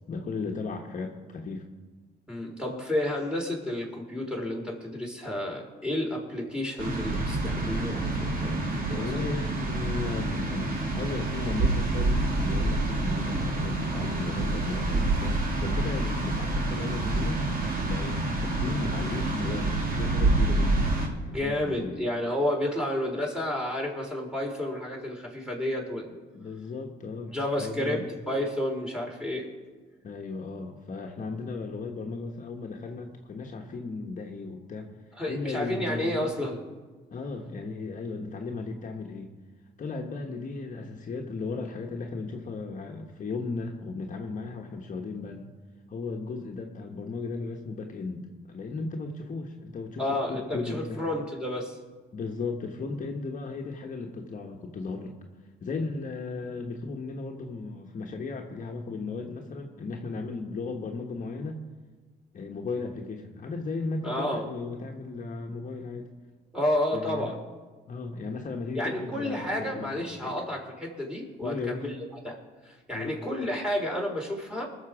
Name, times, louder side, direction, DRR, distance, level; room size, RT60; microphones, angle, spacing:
voice 1, 0.1-1.6 8.9-17.4 17.8-20.9 21.2-22.0 26.3-28.1 30.0-34.9 35.3-36.3 37.1-39.3 39.8-45.5 45.9-50.0 50.3-51.0 52.1-55.1 55.6-61.5 62.3-66.1 66.9-67.3 67.9-70.3 71.4-71.9 72.9-73.1, left 3 dB, 45° left, 1 dB, 1.4 m, -35 dB
voice 2, 2.3-9.2 21.3-26.1 27.3-29.5 35.1-36.6 50.0-51.8 64.0-64.5 66.5-67.4 68.7-72.0 72.2-72.4 72.6-74.7, left 1 dB, 5° right, -1 dB, 3.6 m, -31 dB
sound 1, 6.8-21.1, right 2 dB, 50° right, 2.4 m, -27 dB
19.5 x 6.7 x 4.9 m, 1.4 s
supercardioid pair, 75°, 19 cm